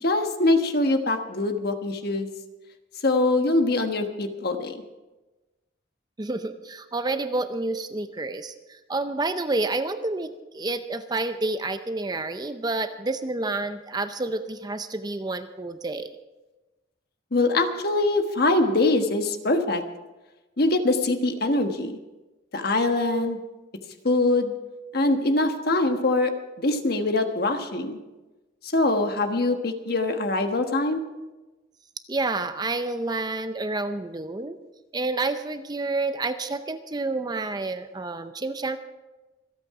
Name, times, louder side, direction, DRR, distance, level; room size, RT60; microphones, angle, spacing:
voice 1, 0.0-2.3 3.0-4.8 17.3-19.8 20.6-22.0 22.5-23.4 24.0-24.5 24.9-28.0 28.6-31.0, left 2 dB, 55° left, 6 dB, 1.3 m, -23 dB
voice 2, 6.2-8.5 8.9-16.1 32.1-34.6 34.9-38.8, right 2 dB, 20° right, 9 dB, 0.6 m, -29 dB
26.0 x 8.9 x 4.8 m, 1.1 s
head